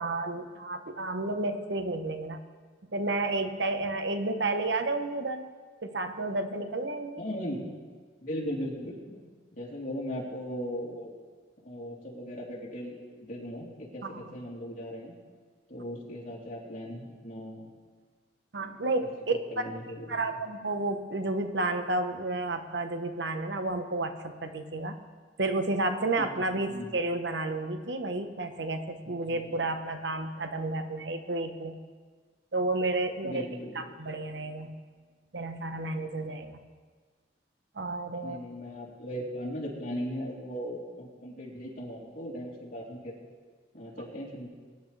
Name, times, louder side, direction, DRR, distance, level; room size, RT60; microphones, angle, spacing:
voice 1, 0.0-2.4 2.9-5.5 5.8-7.2 14.0-14.3 18.5-19.7 20.1-24.9 25.4-31.7 32.5-33.5 33.7-34.8 35.3-36.6 37.7-38.4, right 2 dB, 75° right, 7 dB, 1.1 m, -31 dB
voice 2, 7.2-7.6 8.2-9.2 9.6-11.2 11.6-13.0 13.3-15.1 15.7-17.7 18.6-18.8 19.5-20.2 26.2-26.3 26.7-26.9 29.2-29.6 33.2-33.7 38.2-43.1 43.7-44.5, equal, 45° left, -5 dB, 3.5 m, -38 dB
23.0 x 11.0 x 3.4 m, 1.5 s
head